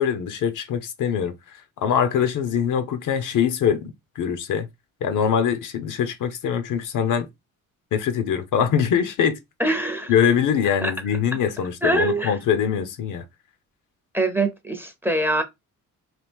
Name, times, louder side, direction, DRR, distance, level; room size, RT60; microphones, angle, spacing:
voice 1, 0.0-1.3 1.8-4.7 5.0-7.3 7.9-9.4 10.1-13.2, left 8 dB, 60° left, 0.7 m, -23 dB
voice 2, 9.6-10.1 10.8-10.9 11.8-12.3 14.1-15.4, right 2 dB, 5° right, 0.6 m, -23 dB
3.0 x 2.4 x 3.4 m
cardioid pair, 110°, 34 cm